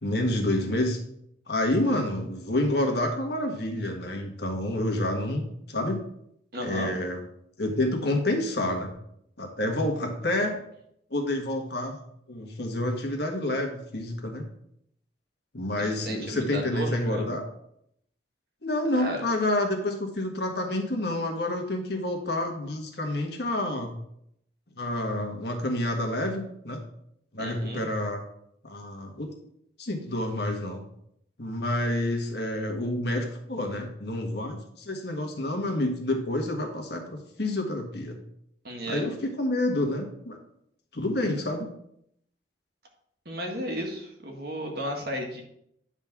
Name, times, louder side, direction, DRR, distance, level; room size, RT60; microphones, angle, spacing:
voice 1, 0.0-1.0 1.5-6.0 6.6-7.2 7.6-8.9 9.4-10.6 11.1-12.0 12.3-14.5 15.5-17.4 18.6-23.9 24.8-26.8 27.3-28.2 28.6-29.3 29.8-30.8 31.4-38.2 38.9-40.4 40.9-41.7, left 1 dB, 55° left, 2 dB, 1.5 m, -28 dB
voice 2, 6.5-6.9 15.7-17.3 18.9-19.2 27.4-27.8 38.6-39.0 43.2-45.4, equal, 55° right, 2 dB, 1.6 m, -34 dB
10.0 x 3.7 x 5.9 m, 0.73 s
head